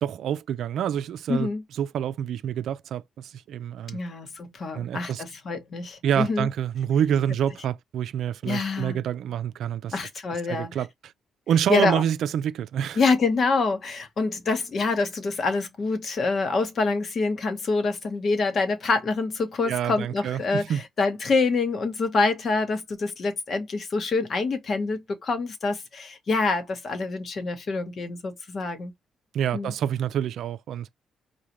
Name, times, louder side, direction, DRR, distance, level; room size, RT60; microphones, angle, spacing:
voice 1, 0.0-1.5 1.8-4.0 4.7-5.2 6.0-10.0 10.5-11.1 11.5-13.0 19.6-20.8 29.3-30.9, right 9 dB, 75° right, 0.4 m, -27 dB
voice 2, 1.3-1.6 3.9-6.5 8.4-9.0 9.9-10.8 11.7-12.0 13.0-28.9 29.5-29.7, left 3 dB, 50° left, 1.1 m, -26 dB
4.9 x 2.2 x 3.0 m
cardioid pair, 90°, 0 cm